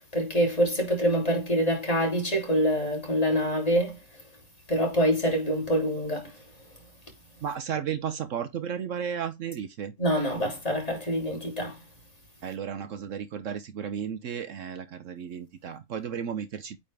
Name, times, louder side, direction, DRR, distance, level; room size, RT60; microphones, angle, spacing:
voice 1, 0.1-4.0 4.7-6.3 10.0-11.8, equal, 25° left, 3.2 m, -25 dB
voice 2, 7.4-9.9 12.4-16.8, right 8 dB, 65° right, 1.1 m, -34 dB
8.7 x 4.2 x 3.4 m
omnidirectional pair, 1.5 m